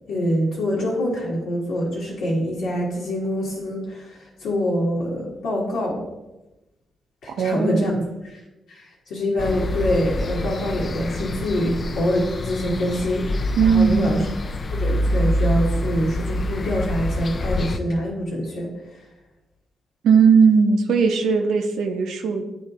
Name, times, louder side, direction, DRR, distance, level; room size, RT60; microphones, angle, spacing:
voice 1, 0.1-6.0 7.2-8.4 8.7-14.2 14.7-18.7, equal, 85° left, -5 dB, 1.3 m, -25 dB
voice 2, 7.4-8.1 13.6-14.3 20.0-22.4, right 5 dB, 85° right, 5 dB, 0.7 m, -18 dB
sound 1, 9.4-17.8, left 1 dB, 45° left, 0.4 m, -26 dB
9.4 x 3.2 x 4.0 m, 1.0 s
cardioid pair, 60°, 0 cm